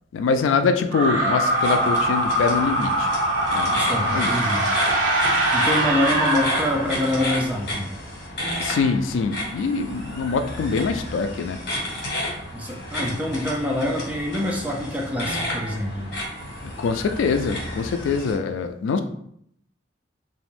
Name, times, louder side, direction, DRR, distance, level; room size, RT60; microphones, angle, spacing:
voice 1, 0.1-3.1 3.5-4.3 8.6-11.6 16.6-19.0, left 5 dB, 80° left, 9 dB, 0.3 m, -24 dB
sound 1, 0.9-7.3, right 1 dB, 80° right, 0.4 m, -22 dB
sound 2, 1.5-18.3, left 1 dB, 65° left, 1.1 m, -32 dB
voice 2, 3.7-4.7 5.5-7.9 12.5-16.1, left 1 dB, 10° right, 0 dB, 0.3 m, -25 dB
2.4 x 2.1 x 3.2 m, 0.70 s
head